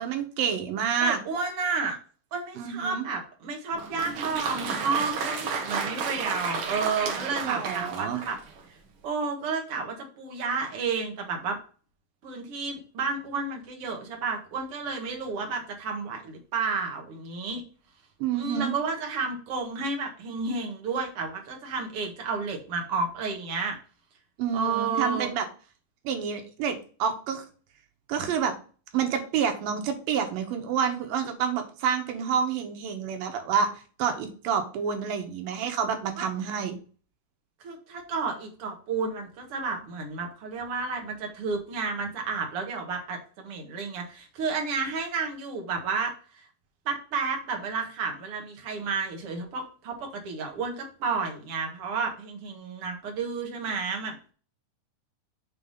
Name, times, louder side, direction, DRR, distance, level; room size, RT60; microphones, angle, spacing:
voice 1, 0.0-1.2 2.6-3.1 7.4-8.2 18.2-18.7 24.4-25.5 26.0-27.5 28.1-28.5 28.9-33.7 34.0-36.7, right 7 dB, 90° right, 5 dB, 3.0 m, -28 dB
voice 2, 1.0-2.0 2.3-8.4 9.0-11.6 12.2-17.6 18.3-23.8 24.5-25.3 36.2-36.3 37.6-46.1 46.9-54.3, right 4 dB, 50° right, 2 dB, 2.3 m, -31 dB
Applause, 3.7-8.6, right 5 dB, 65° right, 1.3 m, -32 dB
7.3 x 4.1 x 5.5 m, 0.38 s
omnidirectional pair, 3.9 m